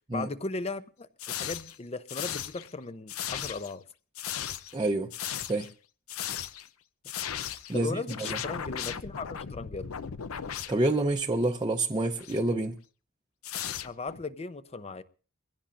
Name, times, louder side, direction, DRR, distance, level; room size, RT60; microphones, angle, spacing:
voice 1, 0.1-3.8 7.7-9.9 13.8-15.0, left 3 dB, 30° left, 0.6 m, -37 dB
sound 1, 1.2-1.8 2.1-2.7 3.1-3.7 4.1-4.8 5.1-5.7 6.1-6.7 7.0-7.8 8.1-11.2 12.2-12.4 13.4-14.2, left 9 dB, 85° left, 0.6 m, -37 dB
voice 2, 4.7-5.1 5.5-5.7 7.7-8.4 10.7-12.8, right 2 dB, 20° right, 0.7 m, -28 dB
23.0 x 16.0 x 2.5 m
head